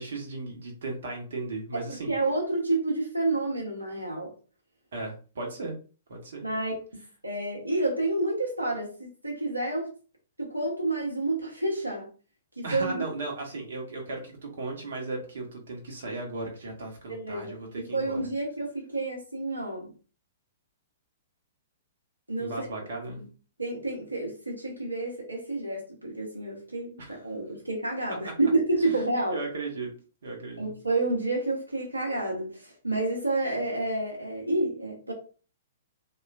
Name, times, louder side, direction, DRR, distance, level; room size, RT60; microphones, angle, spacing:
voice 1, 0.0-2.1 4.9-5.7 6.1-6.4 12.6-18.2 22.4-23.2 27.0-27.1 28.2-28.3 28.8-29.0 29.3-29.9 30.2-30.7, right 3 dB, 60° right, 0.9 m, -36 dB
voice 2, 1.7-4.3 6.4-9.9 10.4-12.1 12.6-13.0 17.1-19.9 22.3-22.7 23.1-23.3 23.6-29.4 30.6-35.1, right 2 dB, 85° right, 0.8 m, -29 dB
3.0 x 2.3 x 2.4 m
figure-of-eight pair, 110°, 0 cm